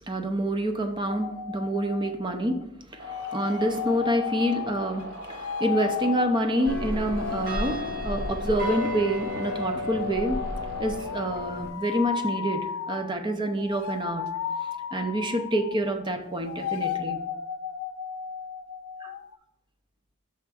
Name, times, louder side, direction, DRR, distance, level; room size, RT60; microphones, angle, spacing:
voice 1, 0.1-10.4 10.8-14.3 14.9-17.2 19.0-19.1, right 1 dB, 20° right, 6 dB, 0.6 m, -27 dB
sound 1, 1.1-2.6 3.0-16.0 16.3-19.4, left 8 dB, 70° left, 0.3 m, -35 dB
sound 2, 3.0-11.3, right 2 dB, 60° right, 2.1 m, -42 dB
sound 3, 6.6-11.7, left 2 dB, 40° right, 1.2 m, -33 dB
6.6 x 3.5 x 6.1 m, 0.87 s
head